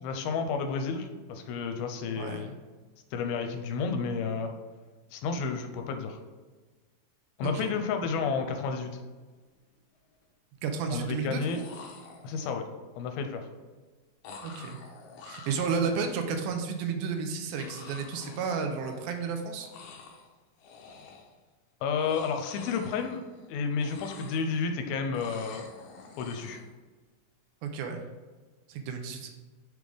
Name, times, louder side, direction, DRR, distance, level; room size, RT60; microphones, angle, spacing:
voice 1, 0.0-2.5 3.1-4.5 5.1-6.2 7.4-9.0 10.9-11.6 12.2-12.7 13.0-13.5 21.8-23.2 23.5-25.7 26.2-26.6, left 5 dB, 90° left, 6 dB, 2.5 m, -31 dB
voice 2, 2.2-2.5 7.4-7.7 10.6-11.4 14.4-14.8 15.3-19.7 27.6-28.0 28.7-29.3, right 5 dB, 85° right, 5 dB, 2.4 m, -32 dB
sound 1, 9.2-9.3 9.6-10.2 11.2-11.3 11.5-12.7 14.2-16.4 17.6-19.3 19.5-20.3 20.6-21.4 21.8-23.5 23.7-24.8 25.1-26.7, left 4 dB, 70° left, 2.0 m, -48 dB
6.4 x 3.5 x 4.9 m, 1.3 s
omnidirectional pair, 4.3 m